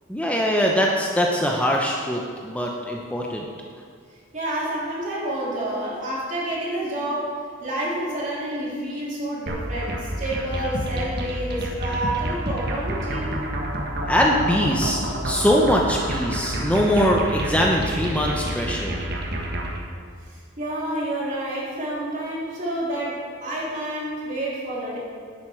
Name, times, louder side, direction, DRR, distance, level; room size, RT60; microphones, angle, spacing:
voice 1, 0.1-3.4 14.0-19.0, equal, 5° left, -1 dB, 0.7 m, -22 dB
voice 2, 4.3-7.3 7.6-13.4 20.3-25.0, right 1 dB, 40° right, -6 dB, 3.2 m, -29 dB
sound 1, 9.5-19.8, right 1 dB, 60° right, 1.5 m, -29 dB
11.0 x 8.6 x 4.5 m, 2.1 s
head